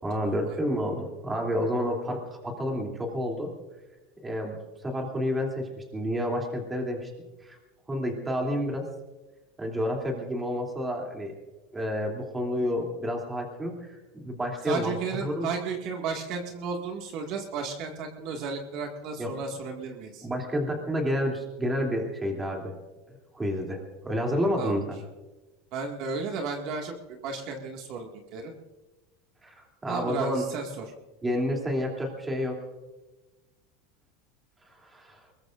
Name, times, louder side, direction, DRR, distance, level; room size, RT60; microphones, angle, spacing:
voice 1, 0.0-3.5 4.2-4.6 4.8-7.1 7.4-7.6 7.9-8.9 9.6-11.3 11.7-15.5 19.2-19.3 20.2-22.7 23.3-25.0 29.4-30.4 31.2-32.6 34.8-35.2, equal, 10° right, 0 dB, 3.0 m, -30 dB
voice 2, 14.6-20.3 24.6-24.8 25.7-28.5 29.9-30.9, right 5 dB, 50° right, 2 dB, 2.0 m, -33 dB
23.5 x 21.5 x 2.6 m, 1.1 s
supercardioid pair, 145°, 0 cm